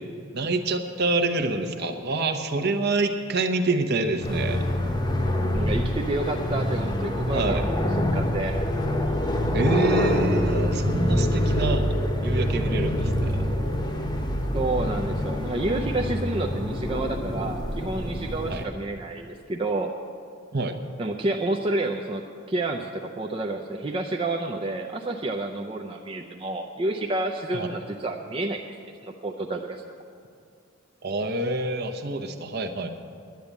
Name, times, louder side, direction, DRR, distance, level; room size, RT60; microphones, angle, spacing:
voice 1, 0.3-4.7 7.3-7.6 9.5-11.8 12.2-13.4 18.5-18.7 20.5-20.8 27.5-27.7 31.0-32.9, right 2 dB, 50° right, 7 dB, 0.9 m, -26 dB
sound 1, 4.2-18.6, left 1 dB, 20° left, 1.0 m, -26 dB
voice 2, 5.5-8.6 14.5-19.9 21.0-22.2 22.5-28.6 29.0-29.9, right 2 dB, 25° right, 1 dB, 0.5 m, -29 dB
10.5 x 10.0 x 8.2 m, 2.3 s
head